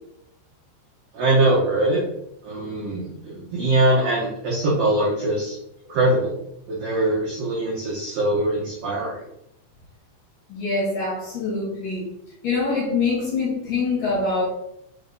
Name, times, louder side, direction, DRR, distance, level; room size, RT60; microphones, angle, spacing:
voice 1, 1.1-2.0 2.4-5.6 5.9-6.3 6.7-9.2, right 1 dB, 75° right, -5 dB, 2.0 m, -22 dB
voice 2, 10.5-12.1 12.4-14.4, left 3 dB, 55° left, -6 dB, 2.8 m, -24 dB
6.8 x 3.6 x 3.9 m, 0.78 s
omnidirectional pair, 5.7 m